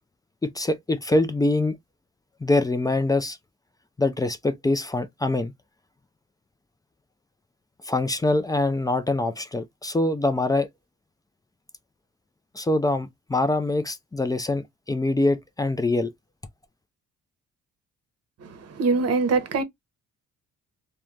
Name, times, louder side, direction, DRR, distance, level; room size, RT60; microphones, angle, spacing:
voice 1, 0.4-1.8 2.4-3.4 4.0-5.5 7.8-10.7 12.5-16.1, left 2 dB, 15° left, 0.3 m, -24 dB
voice 2, 18.4-19.6, right 4 dB, 55° right, 0.8 m, -23 dB
3.0 x 2.2 x 2.3 m
cardioid pair, 90°, 30 cm